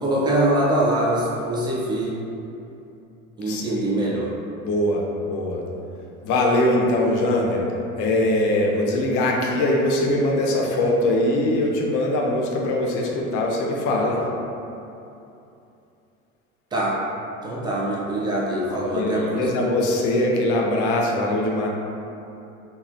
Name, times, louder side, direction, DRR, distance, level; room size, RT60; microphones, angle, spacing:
voice 1, 0.0-2.1 3.4-4.3 16.7-17.0 17.4-19.4, right 1 dB, 10° right, -5 dB, 0.4 m, -23 dB
voice 2, 4.6-5.6 6.2-7.7 8.0-14.2 18.7-21.7, left 1 dB, 45° left, -1 dB, 0.6 m, -22 dB
2.9 x 2.4 x 2.5 m, 2.8 s
hypercardioid pair, 85°, 43 cm